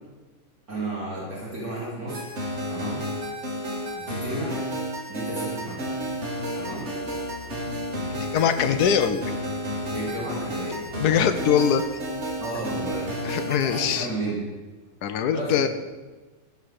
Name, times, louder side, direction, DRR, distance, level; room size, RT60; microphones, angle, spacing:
voice 1, 0.7-2.3 2.7-3.0 3.9-4.6 5.1-5.9 6.5-6.9 9.9-10.8 12.4-13.2 13.6-14.5 15.3-15.5, right 2 dB, 65° right, -8 dB, 3.5 m, -32 dB
sound 1, 2.1-13.8, equal, 45° right, 1.9 m, -32 dB
sound 2, 5.9-13.6, left 4 dB, 40° left, 1.5 m, -45 dB
voice 2, 8.1-9.2 11.0-11.8 13.2-14.1 15.0-15.7, left 8 dB, 85° left, 9 dB, 1.3 m, -22 dB
15.0 x 5.8 x 6.5 m, 1.2 s
omnidirectional pair, 1.7 m